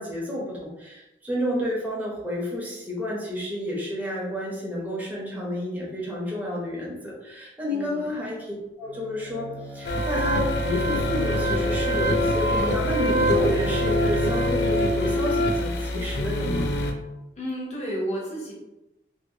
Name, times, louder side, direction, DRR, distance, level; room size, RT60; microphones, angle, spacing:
voice 1, 0.0-16.7, left 1 dB, 10° right, -5 dB, 0.7 m, -30 dB
voice 2, 7.7-8.1 17.4-18.5, equal, 40° left, -4 dB, 0.8 m, -32 dB
Bowed string instrument, 8.8-16.6, left 1 dB, 80° right, 0.7 m, -33 dB
sound 1, 9.8-16.9, equal, 65° left, 0.4 m, -24 dB
2.5 x 2.5 x 2.7 m, 0.98 s
head